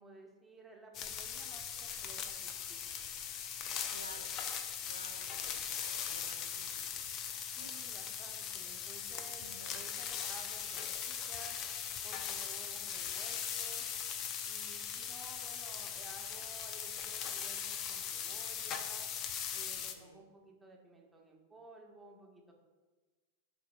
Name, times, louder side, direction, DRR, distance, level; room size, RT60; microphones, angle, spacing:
voice 1, 0.0-2.8 7.6-9.4 9.7-11.6 12.0-13.9 14.4-19.1 19.5-22.5, right 2 dB, 10° right, 0 dB, 1.2 m, -55 dB
sound 1, 0.9-19.9, left 8 dB, 35° left, 0.6 m, -40 dB
voice 2, 3.9-4.4 4.8-6.8 7.6-7.7 9.4-9.9 19.7-20.2, equal, 85° left, 8 dB, 0.5 m, -53 dB
10.5 x 5.2 x 2.2 m, 1.3 s
figure-of-eight pair, 90°, 0 cm